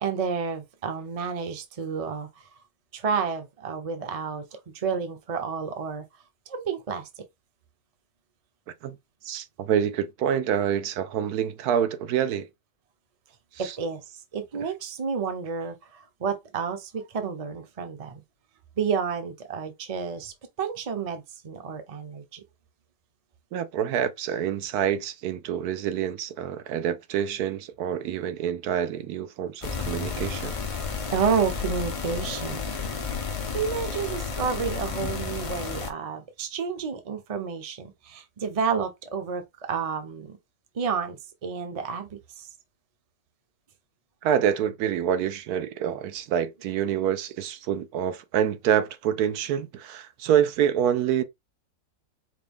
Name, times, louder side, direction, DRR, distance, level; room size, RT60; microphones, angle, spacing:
voice 1, 0.0-2.5 2.9-6.1 6.5-7.1 13.6-18.2 18.8-22.4 31.1-32.6 33.5-40.4 40.7-42.5, right 6 dB, 35° right, 0.6 m, -30 dB
voice 2, 9.2-12.5 13.6-13.7 23.5-30.5 44.2-51.2, right 9 dB, 85° right, 1.1 m, -26 dB
sound 1, 29.6-35.9, left 5 dB, 50° left, 0.4 m, -32 dB
5.0 x 2.3 x 3.4 m
omnidirectional pair, 1.6 m